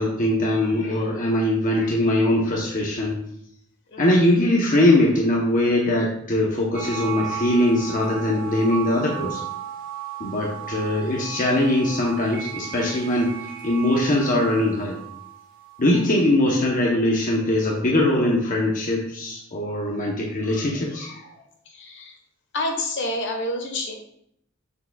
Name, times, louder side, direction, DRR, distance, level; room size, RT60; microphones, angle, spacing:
voice 1, 0.0-3.2 4.0-9.4 10.2-13.4 13.6-15.0 15.8-21.3, left 1 dB, 40° left, -3 dB, 0.9 m, -21 dB
voice 2, 3.9-4.3 21.6-22.2 22.5-23.9, left 1 dB, 60° left, 3 dB, 1.3 m, -29 dB
sound 1, 6.7-16.0, right 9 dB, 45° right, 1.3 m, -35 dB
6.9 x 6.7 x 2.3 m, 0.72 s
head